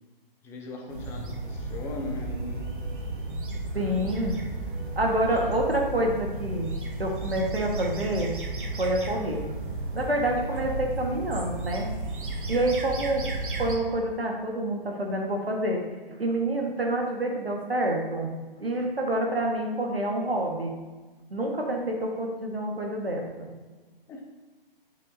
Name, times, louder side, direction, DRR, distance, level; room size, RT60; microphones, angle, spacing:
voice 1, 0.4-2.7 3.7-4.5 5.1-5.6 24.1-24.2, left 3 dB, 10° left, 1 dB, 0.6 m, -40 dB
sound 1, 0.9-13.8, right 2 dB, 60° right, 1.4 m, -33 dB
voice 2, 3.7-4.4 5.0-6.7 7.0-8.4 8.6-9.5 9.9-11.9 12.5-13.3 13.6-18.3 18.6-20.7 21.3-23.5, right 1 dB, 80° right, 1 dB, 1.7 m, -27 dB
9.3 x 8.2 x 2.8 m, 1.3 s
figure-of-eight pair, 130°, 29 cm